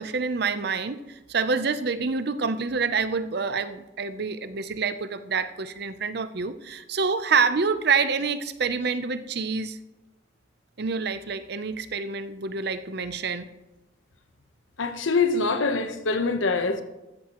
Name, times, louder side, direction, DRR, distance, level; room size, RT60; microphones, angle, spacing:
voice 1, 0.0-9.8 10.8-13.5, right 5 dB, 55° right, 0.6 m, -27 dB
voice 2, 14.8-16.8, left 4 dB, 75° left, 1.0 m, -24 dB
14.0 x 13.0 x 3.0 m
head